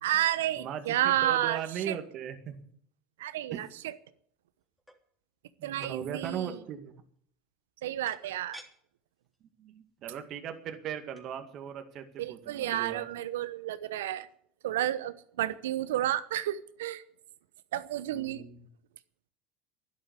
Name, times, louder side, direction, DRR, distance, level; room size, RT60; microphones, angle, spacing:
voice 1, 0.0-2.0 3.2-4.0 5.6-6.6 7.8-8.6 12.2-14.3 14.6-17.0 17.7-18.4, right 13 dB, 80° right, 0.9 m, -31 dB
voice 2, 0.6-2.5 3.5-3.6 5.6-6.9 9.6-13.1 18.1-18.6, right 8 dB, 50° right, 2.0 m, -38 dB
sound 1, 4.6-5.0 5.8-6.4 8.1-8.7 9.2-9.4 9.7-9.9 10.9-11.0 11.2-11.3, equal, 5° left, 3.3 m, -50 dB
11.5 x 11.5 x 8.2 m
hypercardioid pair, 75°, 0 cm